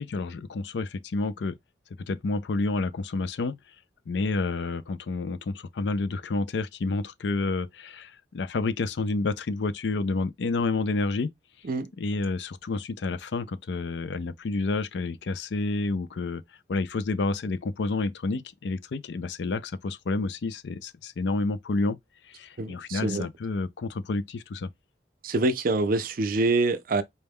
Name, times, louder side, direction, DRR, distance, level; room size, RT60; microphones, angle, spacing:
voice 1, 0.0-1.6 2.0-3.6 4.1-11.3 12.0-16.4 16.7-22.0 22.2-24.7, left 3 dB, 75° left, 0.4 m, -29 dB
voice 2, 22.6-23.3 25.2-27.0, right 3 dB, 55° right, 0.5 m, -25 dB
4.2 x 2.2 x 3.4 m
head